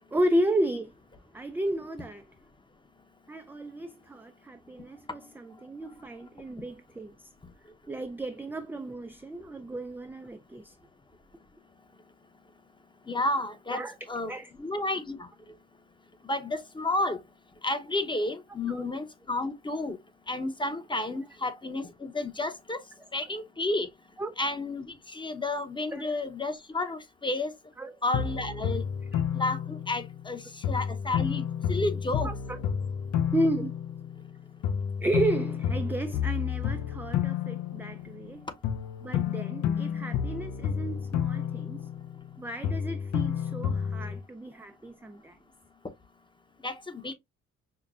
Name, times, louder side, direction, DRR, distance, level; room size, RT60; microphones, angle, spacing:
voice 1, 0.1-0.9 1.3-2.2 3.3-7.3 7.9-10.7 13.7-14.0 14.3-14.5 18.7-18.8 24.2-24.3 25.9-26.2 27.8-28.0 29.1-29.2 32.2-32.6 33.3-33.7 35.0-38.5 39.0-41.9 42.4-45.4, right 1 dB, 5° right, 0.3 m, -33 dB
voice 2, 13.1-13.8 14.1-14.3 14.6-15.3 16.2-17.2 17.6-20.0 20.3-22.8 23.1-23.9 24.4-27.5 28.0-28.8 29.3-30.4 30.7-32.3 46.6-47.1, left 2 dB, 15° left, 0.8 m, -31 dB
sound 1, 28.1-30.3 30.6-34.3 34.6-38.3 38.6-42.3 42.6-44.2, left 8 dB, 65° left, 0.6 m, -30 dB
5.7 x 2.1 x 2.3 m
cardioid pair, 90°, 30 cm